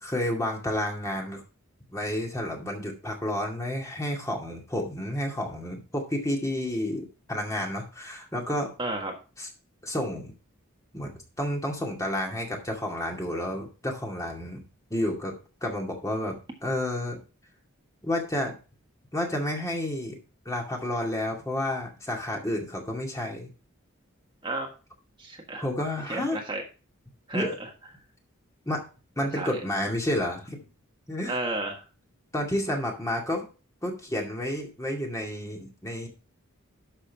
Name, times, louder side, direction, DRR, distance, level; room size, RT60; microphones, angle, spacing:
voice 1, 0.0-1.4 1.9-8.7 9.4-9.5 9.8-10.3 10.9-11.1 11.4-15.3 15.6-17.2 18.0-18.6 19.1-20.2 20.5-23.5 25.6-26.4 27.3-27.6 28.7-28.8 29.2-30.7 31.1-31.4 32.3-33.4 33.8-36.1, left 1 dB, 15° left, 0 dB, 2.2 m, -30 dB
voice 2, 8.8-9.1 24.4-24.7 25.2-25.6 26.1-26.6 27.3-27.5 29.3-29.6 31.3-31.8, right 2 dB, 20° right, 1 dB, 1.6 m, -32 dB
11.5 x 6.5 x 3.5 m, 0.34 s
head